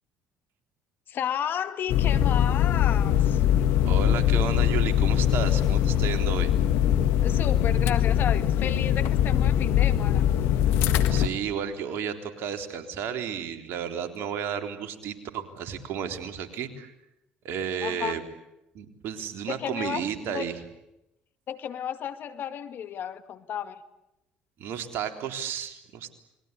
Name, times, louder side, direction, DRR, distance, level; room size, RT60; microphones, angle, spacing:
voice 1, 1.1-3.4 7.2-10.3 17.8-18.2 19.5-20.5 21.5-23.8, left 9 dB, 55° left, 11 dB, 2.2 m, -33 dB
sound 1, 1.9-11.3, left 10 dB, 70° left, 1.8 m, -22 dB
voice 2, 3.8-6.5 11.1-16.9 17.4-18.2 18.7-20.6 24.6-26.1, right 8 dB, 65° right, 7 dB, 3.7 m, -32 dB
29.5 x 22.0 x 8.4 m, 0.89 s
hypercardioid pair, 65°, 4 cm